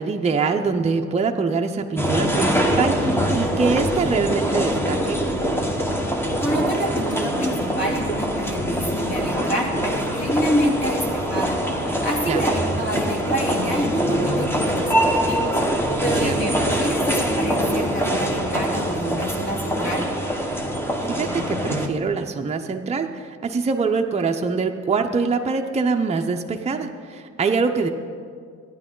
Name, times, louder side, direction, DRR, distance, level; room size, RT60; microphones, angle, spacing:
voice 1, 0.0-5.2 12.3-12.4 16.2-16.3 21.0-27.9, right 4 dB, 20° right, 4 dB, 0.6 m, -24 dB
sound 1, 2.0-21.9, equal, 10° left, 1.1 m, -23 dB
voice 2, 6.4-15.6 16.0-20.1, equal, 40° left, -2 dB, 2.7 m, -27 dB
14.0 x 10.0 x 3.8 m, 2.1 s
cardioid pair, 90°, 30 cm